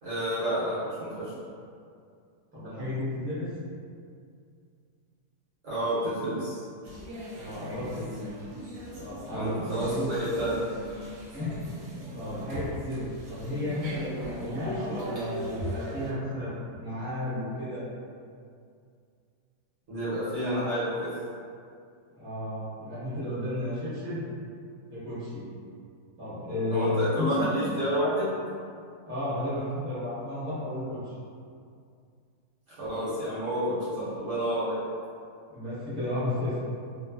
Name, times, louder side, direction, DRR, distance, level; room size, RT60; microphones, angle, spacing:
voice 1, 0.0-1.3 5.6-6.6 9.3-10.6 19.9-21.1 26.7-28.3 32.8-34.8, equal, 55° right, -12 dB, 1.1 m, -29 dB
voice 2, 2.5-3.5 7.3-8.3 9.0-10.1 11.3-11.6 12.1-17.8 22.1-24.2 24.9-25.5 26.2-27.5 29.1-31.1 35.5-36.5, left 1 dB, 10° right, -12 dB, 0.7 m, -33 dB
sound 1, 6.8-16.1, right 1 dB, 85° right, 1.2 m, -39 dB
3.0 x 2.1 x 2.3 m, 2.3 s
omnidirectional pair, 1.7 m